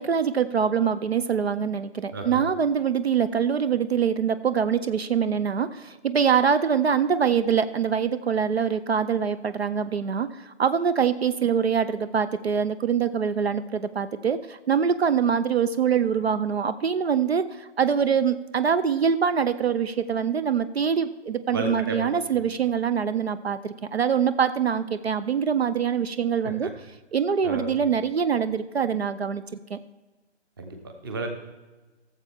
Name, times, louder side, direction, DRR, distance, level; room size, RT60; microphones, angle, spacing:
voice 1, 0.0-26.7 27.1-29.4 29.7-29.8, right 7 dB, 65° right, 13 dB, 0.6 m, -24 dB
voice 2, 21.5-22.5 26.4-26.7 27.4-27.7 30.6-30.8 31.0-31.3, right 2 dB, 20° right, 4 dB, 0.8 m, -32 dB
16.5 x 7.3 x 3.5 m, 1.2 s
figure-of-eight pair, 160°, 34 cm